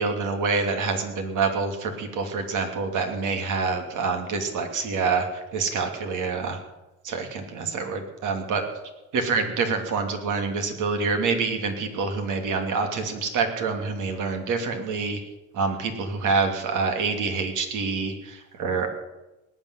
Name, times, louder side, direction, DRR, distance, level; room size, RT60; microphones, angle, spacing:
voice 1, 0.0-6.6 7.0-8.6 9.1-15.2 15.5-18.9, right 4 dB, 85° right, 4 dB, 2.9 m, -26 dB
19.0 x 7.4 x 9.8 m, 1.0 s
cardioid pair, 90°, 30 cm